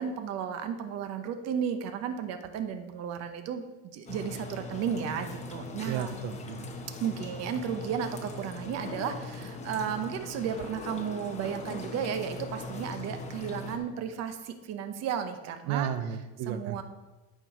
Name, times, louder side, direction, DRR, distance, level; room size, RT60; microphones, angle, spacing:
voice 1, 0.0-6.1 7.0-15.9 16.5-16.8, right 7 dB, 40° right, 8 dB, 0.8 m, -34 dB
sound 1, 4.1-13.8, left 2 dB, 20° left, 0.9 m, -40 dB
voice 2, 5.9-6.7 15.7-16.8, right 9 dB, 75° right, 10 dB, 0.7 m, -33 dB
8.8 x 4.6 x 6.0 m, 1.1 s
cardioid pair, 150°, 39 cm